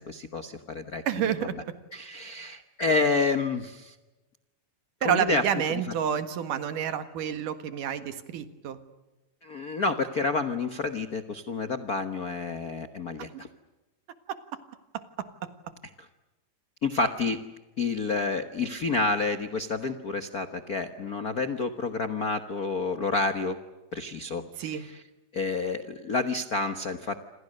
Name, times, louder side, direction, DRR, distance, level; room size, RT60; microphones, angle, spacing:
voice 1, 0.0-1.0 1.9-3.9 5.0-5.4 9.4-13.5 16.8-17.4 17.8-23.5 23.9-25.0 25.3-27.2, left 3 dB, 65° left, 9 dB, 0.9 m, -29 dB
voice 2, 1.1-1.6 5.0-8.8 13.3-13.4 14.3-14.4 14.9-15.3 24.6-24.9, right 9 dB, 85° right, 10 dB, 3.3 m, -29 dB
28.0 x 27.0 x 6.6 m, 1.1 s
omnidirectional pair, 3.6 m